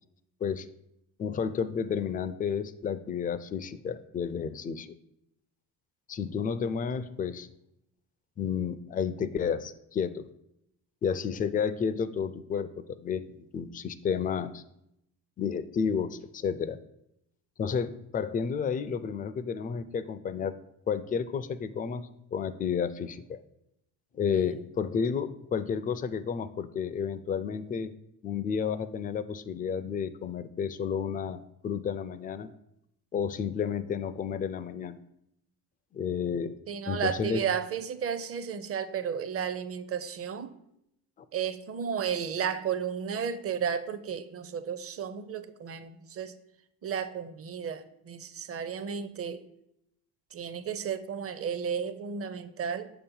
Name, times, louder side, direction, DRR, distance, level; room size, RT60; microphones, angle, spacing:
voice 1, 1.2-4.9 6.1-7.5 8.4-10.3 11.0-12.7 13.0-14.6 15.4-16.8 17.6-20.5 20.9-22.0 22.3-23.4 24.1-27.9 28.2-32.5 33.1-35.0 35.9-36.6 36.9-37.4, left 6 dB, 20° left, 13 dB, 0.3 m, -31 dB
voice 2, 36.7-40.5 41.3-46.3 46.8-49.4 50.3-52.9, right 7 dB, 30° right, 12 dB, 0.5 m, -33 dB
6.5 x 2.9 x 5.5 m, 0.80 s
hypercardioid pair, 60°, 48 cm